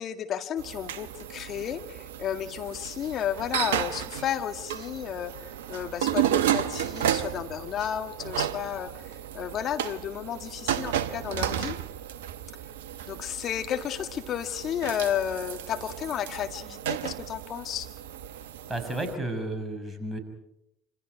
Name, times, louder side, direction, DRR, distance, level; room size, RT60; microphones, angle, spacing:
voice 1, 0.0-8.9 9.3-11.8 13.1-17.9, left 10 dB, 45° left, 6 dB, 2.0 m, -32 dB
sound 1, 0.6-19.1, right 10 dB, 70° right, 0.9 m, -33 dB
voice 2, 18.7-20.2, right 1 dB, 10° right, 4 dB, 6.2 m, -32 dB
27.0 x 26.5 x 4.7 m, 0.80 s
figure-of-eight pair, 65°, 0 cm